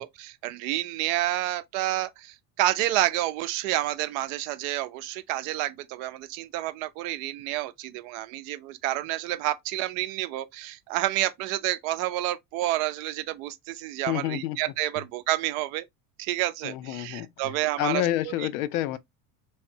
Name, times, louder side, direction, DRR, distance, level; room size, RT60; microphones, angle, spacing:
voice 1, 0.0-15.9 16.2-18.3, right 15 dB, 55° right, 0.6 m, -29 dB
voice 2, 14.1-14.7 16.6-19.0, left 14 dB, 60° left, 0.5 m, -29 dB
3.3 x 3.1 x 2.8 m
hypercardioid pair, 75°, 48 cm